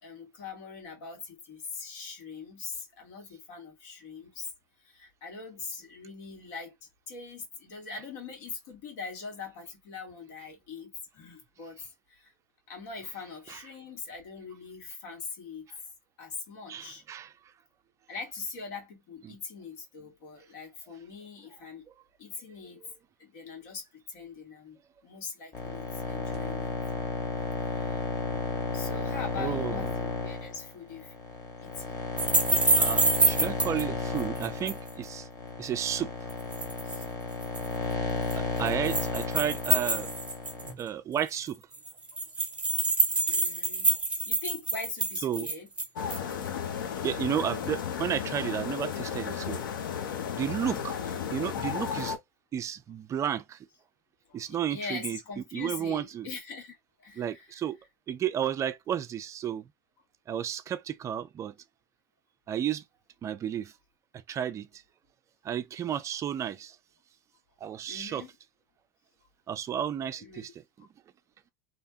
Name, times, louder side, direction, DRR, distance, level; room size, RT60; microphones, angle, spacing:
voice 1, 0.0-4.5 4.8-6.7 7.1-11.8 12.1-12.3 12.7-15.6 16.2-17.0 18.1-21.8 22.2-22.8 23.2-24.8 25.0-26.7 27.7-28.0 28.7-31.1 31.6-32.0 36.8-37.0 38.1-38.8 40.8-40.9 42.1-42.2 43.2-45.7 50.9-51.4 54.3-57.6 67.9-68.3 70.2-70.5 70.8-70.9, left 5 dB, 65° left, 1.6 m, -42 dB
voice 2, 16.7-17.3 19.3-19.4 29.4-29.8 32.8-35.3 35.6-36.1 38.4-40.1 40.8-41.6 45.2-45.5 47.0-49.6 50.3-51.0 51.3-52.2 52.5-53.6 54.3-55.2 55.5-56.3 57.2-57.8 58.1-59.6 60.3-61.5 62.5-62.8 63.2-63.7 64.3-64.7 65.4-66.8 67.6-68.2 69.5-70.5 70.8-70.9, right 9 dB, 30° right, 0.4 m, -32 dB
sound 1, 25.5-40.7, left 4 dB, 30° left, 1.4 m, -33 dB
sound 2, 32.2-33.8 34.2-34.9 36.3-37.0 37.4-37.7 38.3-40.8 41.2-41.3 41.5-41.6 41.7-46.3, right 3 dB, 10° right, 1.0 m, -27 dB
sound 3, 46.0-52.2, left 8 dB, 85° left, 0.6 m, -34 dB
2.7 x 2.2 x 2.8 m
hypercardioid pair, 110°, 11 cm